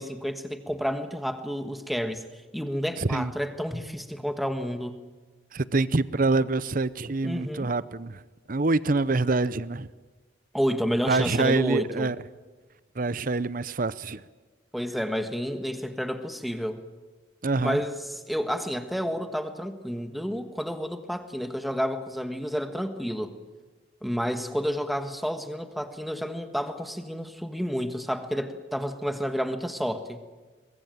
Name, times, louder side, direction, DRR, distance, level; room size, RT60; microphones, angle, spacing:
voice 1, 0.0-2.2 2.5-5.0 7.2-7.7 10.5-12.1 14.7-16.8 17.6-23.3 24.0-30.2, equal, ahead, 8 dB, 1.4 m, -30 dB
voice 2, 3.0-3.3 5.5-8.2 8.5-9.9 11.1-12.2 13.0-14.2 17.4-17.8, right 3 dB, 45° right, 18 dB, 0.7 m, -25 dB
23.5 x 21.0 x 9.1 m, 1.3 s
head